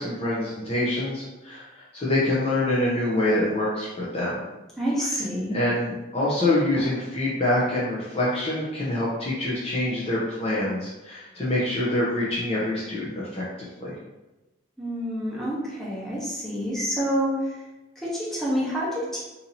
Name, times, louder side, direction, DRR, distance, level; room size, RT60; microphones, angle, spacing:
voice 1, 0.0-4.4 5.5-13.9, left 1 dB, 30° left, -6 dB, 0.6 m, -26 dB
voice 2, 4.8-5.6 14.8-17.6 18.0-19.2, equal, ahead, -7 dB, 0.9 m, -28 dB
2.7 x 2.7 x 4.0 m, 1.1 s
head